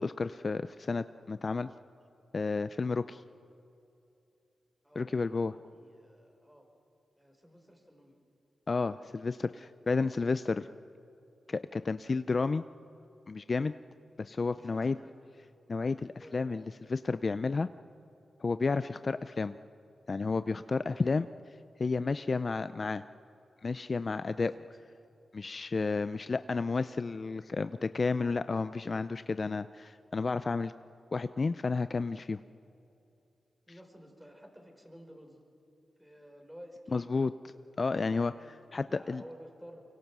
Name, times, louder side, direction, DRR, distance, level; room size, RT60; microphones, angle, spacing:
voice 1, 0.0-1.7 2.3-3.2 5.0-5.5 8.7-10.7 11.5-12.6 13.3-13.7 14.2-15.0 15.7-17.7 18.4-19.6 20.1-21.3 21.8-23.0 23.6-24.5 25.3-30.7 31.1-32.4 36.9-37.3 37.8-38.3 38.7-39.2, left 4 dB, 50° left, 13 dB, 0.5 m, -31 dB
voice 2, 4.8-6.7 7.2-8.2 14.5-15.2 16.1-16.7 20.8-21.2 24.4-24.6 33.7-35.4 36.0-37.1 37.4-38.5 38.9-39.8, equal, 5° right, 3 dB, 4.7 m, -53 dB
24.0 x 24.0 x 6.1 m, 2.8 s
cardioid pair, 55°, 0 cm